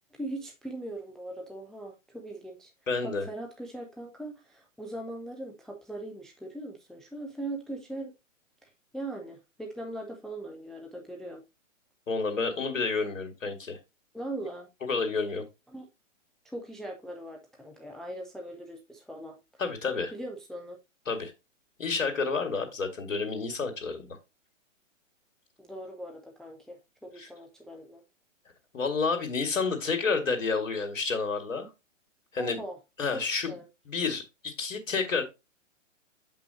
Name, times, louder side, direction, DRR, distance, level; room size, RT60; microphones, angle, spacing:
voice 1, 0.2-2.7 3.0-8.1 8.6-11.4 14.1-14.7 15.7-15.9 16.4-19.4 20.1-20.8 25.6-28.0 32.4-32.8 33.1-33.2 33.5-33.7, right 1 dB, ahead, 0.4 m, -40 dB
voice 2, 2.9-3.3 12.1-13.8 14.8-15.4 19.6-20.1 21.1-21.3 21.8-24.2 27.2-27.3 28.7-31.7 32.3-32.6 33.0-33.5 33.9-35.2, left 4 dB, 80° left, 2.2 m, -30 dB
7.7 x 5.4 x 2.8 m
hypercardioid pair, 125°, 39 cm